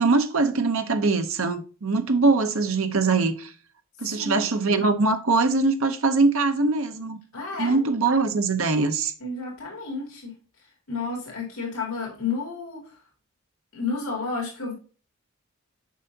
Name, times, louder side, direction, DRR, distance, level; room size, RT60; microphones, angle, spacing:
voice 1, 0.0-3.5 4.0-7.2 7.6-9.1, right 3 dB, 70° right, 0.8 m, -22 dB
voice 2, 4.0-4.5 7.3-7.8 9.2-10.3 10.9-12.8 13.7-14.7, left 4 dB, 75° left, 2.5 m, -31 dB
7.4 x 5.5 x 2.8 m
head